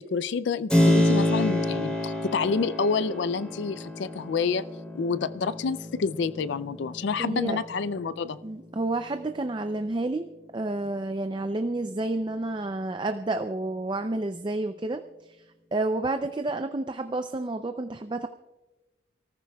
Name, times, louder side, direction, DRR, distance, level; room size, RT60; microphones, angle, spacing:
voice 1, 0.0-4.7 4.9-8.4, left 5 dB, 70° left, 15 dB, 0.4 m, -28 dB
Keyboard (musical), 0.7-9.3, left 1 dB, 5° left, 3.2 m, -28 dB
voice 2, 7.2-7.6 8.4-10.3 10.5-15.4 15.7-18.3, right 2 dB, 25° right, 7 dB, 0.4 m, -30 dB
28.5 x 14.5 x 2.3 m, 1.1 s
head